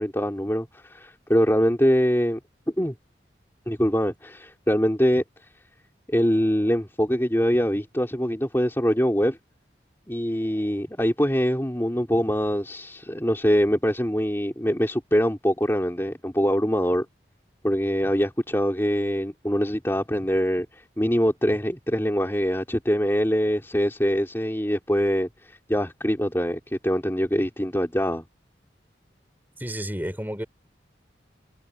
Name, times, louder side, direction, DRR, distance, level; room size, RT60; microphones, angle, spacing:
voice 1, 0.0-2.4 2.8-2.9 3.7-5.2 6.1-9.4 10.1-17.0 17.6-28.2, equal, 15° left, 3.3 m, -23 dB
voice 2, 29.6-30.5, equal, 10° right, 5.4 m, -31 dB
head